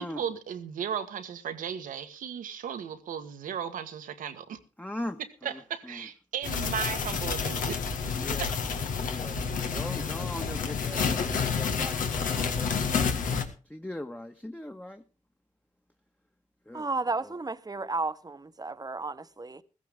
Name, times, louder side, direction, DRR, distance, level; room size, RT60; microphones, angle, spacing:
voice 1, 0.0-4.6 5.4-7.8 8.4-8.5, right 8 dB, 85° right, 1.5 m, -35 dB
voice 2, 4.8-5.2 5.9-6.0 8.1-8.5 9.0-13.4 13.7-15.0 16.7-16.9, left 1 dB, 10° left, 1.4 m, -40 dB
sound 1, 6.4-13.4, left 6 dB, 80° left, 1.8 m, -29 dB
voice 3, 16.7-19.6, right 3 dB, 30° right, 1.2 m, -33 dB
15.5 x 15.0 x 3.6 m
supercardioid pair, 40°, 14 cm